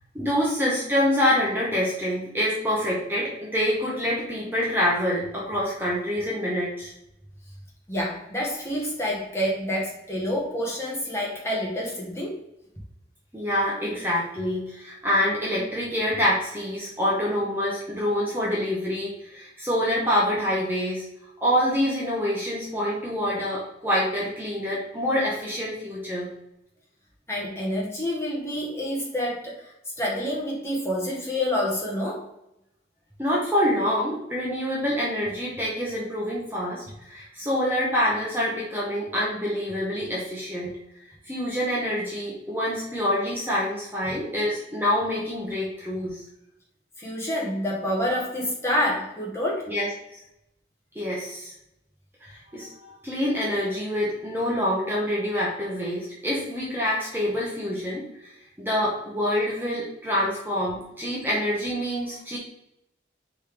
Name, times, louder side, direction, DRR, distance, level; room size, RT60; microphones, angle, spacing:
voice 1, 0.1-6.9 13.3-21.1 21.4-26.3 33.2-40.7 41.3-46.2 49.7-49.9 50.1-50.2 50.9-51.5 52.2-58.3 58.6-62.4, equal, 10° right, -5 dB, 0.8 m, -26 dB
voice 2, 7.9-12.3 27.3-32.3 47.0-49.6, left 1 dB, 15° left, -4 dB, 1.1 m, -28 dB
4.2 x 3.4 x 3.4 m, 0.83 s
head